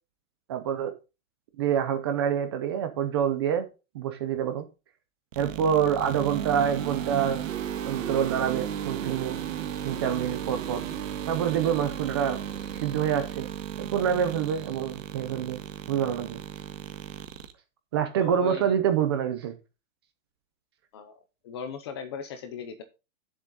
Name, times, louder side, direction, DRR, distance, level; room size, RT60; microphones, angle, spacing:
voice 1, 0.5-0.9 1.6-3.7 3.9-4.7 5.4-7.4 7.8-9.4 9.8-10.8 11.3-12.4 12.8-13.5 13.8-15.6 15.9-16.4 17.9-19.5, right 8 dB, 20° right, 0.6 m, -26 dB
sound 1, 5.3-17.5, right 9 dB, 70° right, 1.7 m, -35 dB
voice 2, 18.2-18.8 20.9-21.1 21.4-22.8, left 6 dB, 20° left, 0.6 m, -37 dB
10.0 x 7.3 x 3.8 m
supercardioid pair, 175°, 40 cm